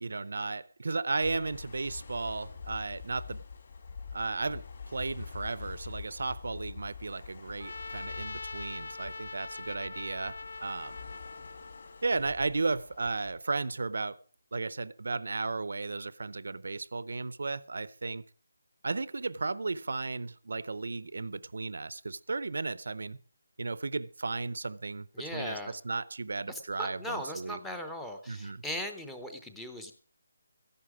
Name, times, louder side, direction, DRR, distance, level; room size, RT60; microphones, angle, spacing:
voice 1, 0.0-3.4 4.1-11.0 12.0-14.2 14.5-18.2 18.8-23.2 23.6-25.1 25.3-27.6 28.3-28.6, right 3 dB, 60° right, 0.6 m, -34 dB
sound 1, 1.2-13.3, left 5 dB, 40° left, 2.2 m, -46 dB
Trumpet, 7.6-12.0, left 3 dB, 60° left, 0.7 m, -42 dB
voice 2, 25.1-25.8 26.5-29.9, equal, ahead, 0.6 m, -39 dB
14.5 x 11.0 x 4.9 m
hypercardioid pair, 180°, 0 cm